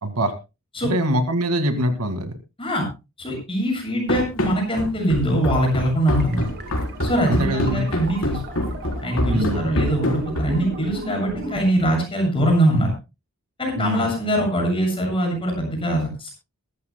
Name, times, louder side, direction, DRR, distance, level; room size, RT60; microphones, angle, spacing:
voice 1, 0.0-0.3 0.8-2.3 7.3-7.9 9.2-9.7 13.8-14.1, right 1 dB, 80° right, 8 dB, 2.0 m, -23 dB
voice 2, 3.2-6.5 7.0-8.4 9.0-12.9 13.6-16.3, right 1 dB, 25° left, 1 dB, 7.1 m, -22 dB
Run, 4.1-10.7, equal, 65° left, 3.9 m, -25 dB
sound 1, 6.2-11.6, right 1 dB, 50° right, 2.5 m, -35 dB
22.5 x 13.5 x 2.2 m, 0.27 s
head